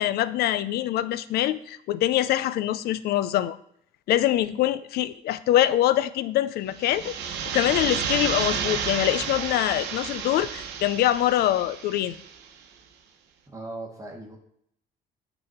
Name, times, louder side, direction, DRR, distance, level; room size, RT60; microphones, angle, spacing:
voice 1, 0.0-3.6 4.1-12.2, left 13 dB, 70° left, 16 dB, 0.4 m, -24 dB
sound 1, 6.7-12.4, right 7 dB, 85° right, 1.0 m, -31 dB
voice 2, 13.5-14.4, right 2 dB, 20° right, 0 dB, 1.5 m, -38 dB
8.6 x 4.1 x 4.3 m, 0.69 s
cardioid pair, 110°, 17 cm